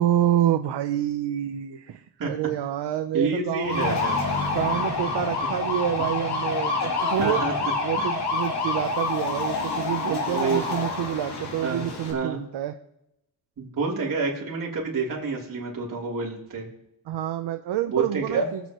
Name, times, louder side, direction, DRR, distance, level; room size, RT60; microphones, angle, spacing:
voice 1, 0.0-4.0 4.5-7.4 7.8-12.7 17.1-18.6, right 11 dB, 85° right, 6 dB, 0.8 m, -27 dB
voice 2, 3.1-4.2 6.8-7.7 8.0-8.1 10.1-10.8 11.6-11.8 12.1-12.4 13.6-16.7 17.9-18.5, right 4 dB, 50° right, -3 dB, 3.4 m, -28 dB
sound 1, 3.6-12.1, left 3 dB, 75° left, 3.1 m, -27 dB
24.0 x 8.3 x 3.1 m, 0.84 s
wide cardioid pair, 160°, 41 cm